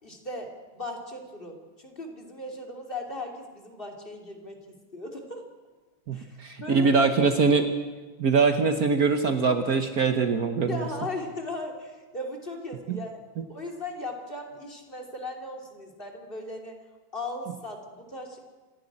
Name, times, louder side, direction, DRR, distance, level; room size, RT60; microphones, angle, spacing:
voice 1, 0.0-5.4 6.1-7.1 10.7-13.2 13.5-16.8 17.1-18.4, left 2 dB, 25° left, 1 dB, 3.1 m, -37 dB
voice 2, 6.1-7.7 8.2-10.8 12.9-13.0 13.4-13.5, right 4 dB, 55° right, 7 dB, 1.4 m, -23 dB
27.5 x 11.5 x 9.9 m, 1.3 s
omnidirectional pair, 2.1 m